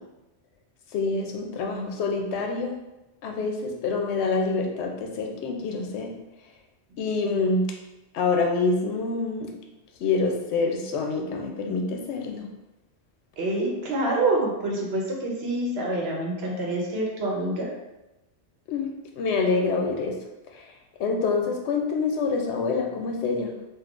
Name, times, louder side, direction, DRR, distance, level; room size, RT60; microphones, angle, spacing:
voice 1, 0.9-2.8 3.2-6.1 7.0-7.7 8.1-9.5 10.0-12.5 18.7-18.9 19.2-20.2 20.5-20.7 21.0-23.5, left 4 dB, 80° left, 2 dB, 0.8 m, -26 dB
voice 2, 13.4-17.7, right 2 dB, 70° right, -2 dB, 1.0 m, -26 dB
3.6 x 2.5 x 2.4 m, 0.98 s
omnidirectional pair, 1.1 m